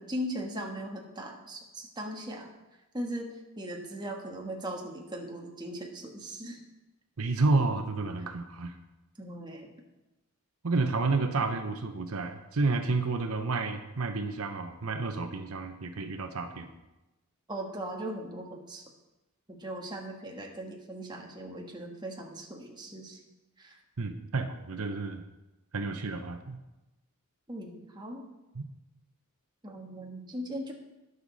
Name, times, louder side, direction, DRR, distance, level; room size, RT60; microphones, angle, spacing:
voice 1, 0.0-2.5 2.9-6.6 9.2-9.7 17.5-18.8 19.5-23.2 23.6-23.8 27.5-28.2 29.6-30.7, right 1 dB, 20° right, 1 dB, 1.5 m, -39 dB
voice 2, 7.2-8.8 10.6-16.7 24.0-25.2 25.7-26.6 28.5-28.7, right 3 dB, 80° right, 7 dB, 0.9 m, -30 dB
20.0 x 6.8 x 4.1 m, 1.0 s
head